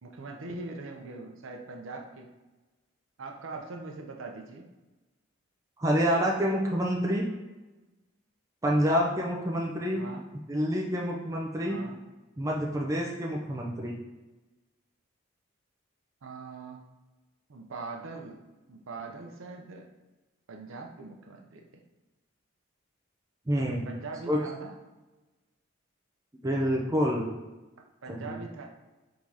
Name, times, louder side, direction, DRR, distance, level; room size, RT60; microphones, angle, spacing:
voice 1, 0.0-2.3 3.2-4.7 9.9-10.3 11.7-12.0 16.2-16.8 17.5-18.4 18.7-19.9 20.5-21.8 23.9-24.8 28.0-28.7, right 3 dB, 70° right, 2 dB, 0.6 m, -41 dB
voice 2, 5.8-7.3 8.6-10.0 10.5-11.8 12.4-13.9 23.5-23.9 24.3-24.4 26.4-27.3 28.1-28.4, equal, 15° right, -1 dB, 0.4 m, -27 dB
3.6 x 2.7 x 4.7 m, 1.1 s
head